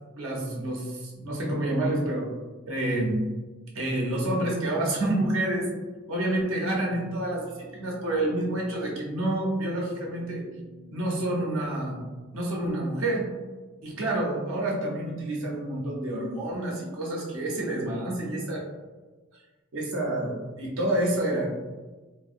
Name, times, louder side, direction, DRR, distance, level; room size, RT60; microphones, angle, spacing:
voice 1, 0.1-2.3 2.7-3.3 3.7-5.7 6.1-10.4 10.9-12.0 12.3-13.3 13.8-18.6 19.7-21.5, right 1 dB, 75° right, -3 dB, 0.6 m, -28 dB
sound 1, 6.9-12.1, equal, 20° right, 0.4 m, -50 dB
2.6 x 2.0 x 2.4 m, 1.2 s
head